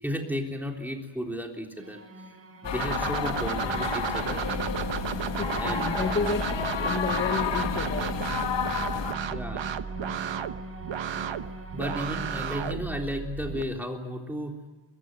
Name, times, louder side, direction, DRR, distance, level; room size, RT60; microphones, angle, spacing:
voice 1, 0.0-2.0 2.6-4.5 5.1-6.0 9.3-9.6 11.7-14.6, equal, 5° right, 2 dB, 3.5 m, -34 dB
sound 1, 1.8-12.5, equal, 30° right, 3.4 m, -43 dB
sound 2, 2.6-9.1, left 6 dB, 80° left, 2.1 m, -31 dB
sound 3, 2.8-13.6, right 7 dB, 90° right, 1.2 m, -33 dB
voice 2, 5.3-8.3, left 4 dB, 30° left, 6 dB, 1.2 m, -31 dB
23.5 x 22.5 x 7.9 m, 1.3 s
wide cardioid pair, 155°, 43 cm